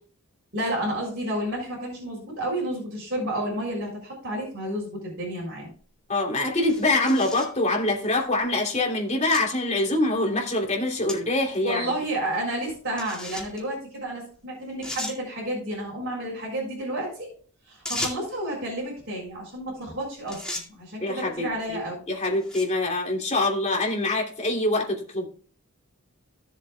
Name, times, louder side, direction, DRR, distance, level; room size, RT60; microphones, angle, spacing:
voice 1, 0.5-5.7 11.6-17.3 17.7-20.4 20.7-22.0, right 1 dB, 50° right, -6 dB, 4.8 m, -31 dB
sound 1, 5.7-5.8 6.6-7.6 8.4-8.5 9.3-9.4 9.9-10.0 11.1-11.2 11.5-11.6 13.0-13.6 14.3-14.4 14.8-15.2 17.9-18.4 19.8-20.0 20.3-20.7 21.5-21.7 22.3-22.8, left 1 dB, 5° left, 2.2 m, -35 dB
voice 2, 6.1-11.9 21.0-21.8 22.1-25.3, left 2 dB, 30° left, -1 dB, 2.9 m, -25 dB
16.5 x 7.4 x 2.3 m, 0.43 s
head